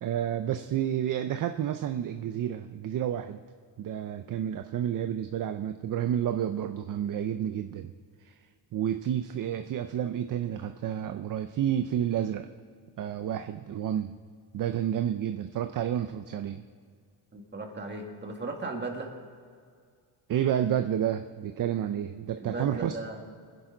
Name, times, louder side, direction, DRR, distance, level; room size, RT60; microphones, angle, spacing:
voice 1, 0.0-3.4 3.8-7.9 8.2-8.4 8.7-12.5 13.0-14.1 14.5-16.6 20.3-23.2, right 10 dB, 45° right, 8 dB, 0.5 m, -30 dB
voice 2, 17.3-19.1 22.4-23.2, right 3 dB, 25° right, 1 dB, 1.9 m, -36 dB
24.5 x 10.5 x 3.9 m, 2.1 s
cardioid pair, 175°, 44 cm